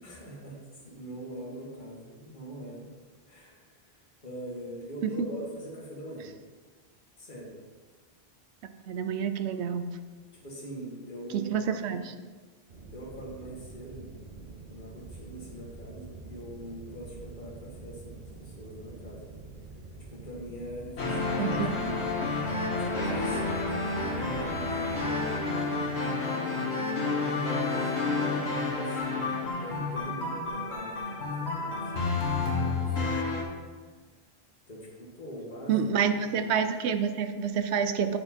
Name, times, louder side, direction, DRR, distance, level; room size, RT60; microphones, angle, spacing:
voice 1, 0.0-0.6 0.8-2.9 3.3-3.9 4.2-6.3 7.2-7.5 10.3-11.5 11.9-12.0 12.9-14.1 14.6-19.2 20.1-21.4 21.7-22.3 22.8-24.9 25.8-33.2 33.8-33.9 34.7-35.9 36.3-36.4, right 1 dB, 50° left, -4 dB, 1.8 m, -43 dB
voice 2, 8.9-9.9 11.3-12.0 21.4-22.0 35.7-38.2, right 7 dB, 85° right, 9 dB, 0.9 m, -28 dB
sound 1, 12.7-25.0, right 3 dB, 60° right, 1.0 m, -46 dB
sound 2, 21.0-33.4, left 3 dB, 90° left, 1.5 m, -30 dB
9.6 x 4.5 x 4.3 m, 1.4 s
omnidirectional pair, 1.1 m